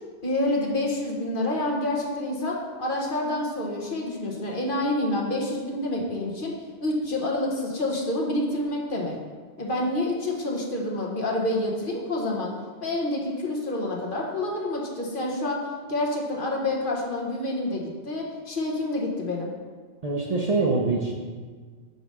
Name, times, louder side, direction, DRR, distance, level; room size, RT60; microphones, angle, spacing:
voice 1, 0.2-6.5 6.8-9.2 9.6-12.5 12.8-15.6 15.9-19.5, left 1 dB, 50° left, -2 dB, 1.2 m, -28 dB
voice 2, 20.0-21.1, right 3 dB, 40° right, -2 dB, 0.7 m, -24 dB
5.4 x 4.8 x 6.4 m, 1.5 s
omnidirectional pair, 1.2 m